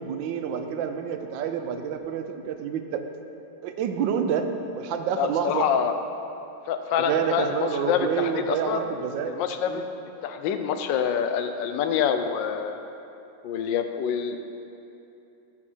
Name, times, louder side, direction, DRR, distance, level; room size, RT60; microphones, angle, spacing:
voice 1, 0.0-3.0 3.6-5.7 7.0-9.3 9.6-9.9, right 7 dB, 90° right, 7 dB, 1.3 m, -28 dB
voice 2, 5.2-5.9 6.7-8.8 9.3-9.8 10.2-12.8 13.4-14.4, left 8 dB, 90° left, 7 dB, 1.3 m, -26 dB
13.5 x 4.5 x 4.3 m, 2.8 s
omnidirectional pair, 2.0 m